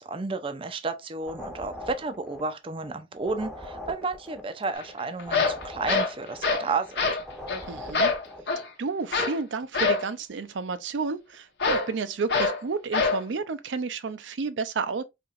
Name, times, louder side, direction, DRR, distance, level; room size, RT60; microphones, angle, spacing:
voice 1, 0.0-7.2, right 3 dB, 30° right, 0.4 m, -32 dB
sound 1, 1.2-2.9 3.2-6.9 7.2-8.5, left 1 dB, 5° left, 0.7 m, -41 dB
sound 2, 4.8-4.9 5.2-6.7 7.0-7.2 7.5-7.6 7.9-8.7 9.1-9.4 9.7-10.1 11.6-11.9 12.3-12.6 12.9-13.2, left 4 dB, 65° left, 0.9 m, -25 dB
voice 2, 7.7-8.1 8.8-15.0, right 4 dB, 90° right, 0.5 m, -31 dB
4.2 x 2.9 x 2.4 m
head